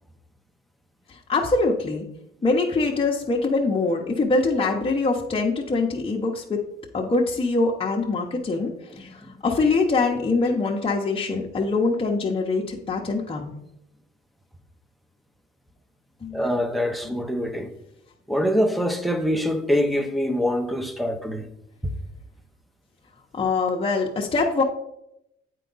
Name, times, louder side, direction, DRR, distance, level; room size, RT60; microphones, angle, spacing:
voice 1, 1.3-2.1 2.4-6.6 6.9-8.7 9.0-13.5 16.2-16.4 23.3-24.6, left 3 dB, 30° left, 0.9 m, -23 dB
voice 2, 16.3-17.7 18.3-21.5 21.8-21.9, equal, ahead, 0.8 m, -24 dB
8.2 x 4.6 x 4.0 m
cardioid pair, 90°, 20 cm